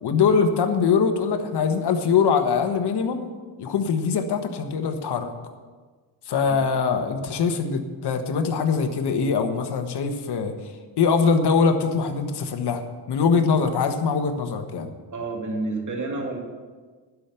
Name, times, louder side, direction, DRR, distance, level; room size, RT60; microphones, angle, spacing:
voice 1, 0.0-3.3 3.6-5.3 6.3-10.5 11.0-14.9, left 5 dB, 60° left, 6 dB, 1.4 m, -22 dB
voice 2, 15.1-16.4, right 2 dB, 40° right, 1 dB, 2.7 m, -29 dB
11.5 x 6.1 x 8.2 m, 1.4 s
cardioid pair, 90°, 44 cm